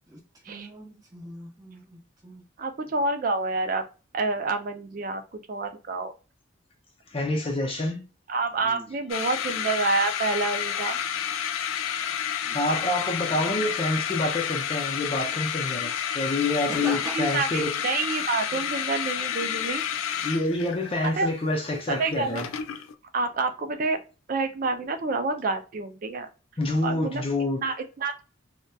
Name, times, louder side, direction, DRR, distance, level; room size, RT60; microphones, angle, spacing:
voice 1, 0.1-2.4 8.6-9.0 12.4-12.6 16.7-17.2, right 1 dB, 20° right, 0.7 m, -41 dB
voice 2, 2.6-3.8 4.1-6.1 8.3-11.0 16.8-19.8 21.2-21.3 21.9-22.4 23.1-24.0 24.3-26.3 26.8-27.2 27.6-28.2, right 3 dB, 45° right, 0.4 m, -28 dB
voice 3, 7.1-8.1 12.5-17.8 18.5-18.6 20.2-22.5 26.6-27.7, left 2 dB, 30° left, 0.5 m, -27 dB
sound 1, 9.1-22.9, left 9 dB, 80° left, 0.3 m, -30 dB
2.7 x 2.1 x 2.2 m
head